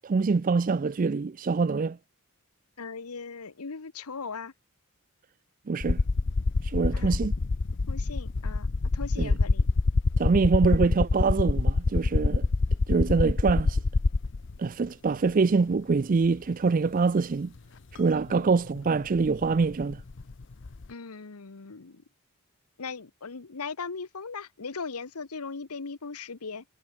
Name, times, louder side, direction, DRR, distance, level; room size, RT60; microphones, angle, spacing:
voice 1, 0.0-2.0 5.7-6.0 6.6-7.3 9.2-9.4 10.2-12.5 12.9-13.8 14.6-17.5 17.9-20.0, right 4 dB, 40° right, 0.4 m, -25 dB
voice 2, 2.8-4.5 6.9-7.2 7.9-8.7 8.9-9.7 10.3-10.5 18.3-18.5 20.9-22.0 22.8-26.6, left 4 dB, 90° left, 1.1 m, -39 dB
sound 1, 5.8-14.6 15.7-15.8 18.0-18.1 18.3-20.9, left 3 dB, 55° left, 0.7 m, -26 dB
head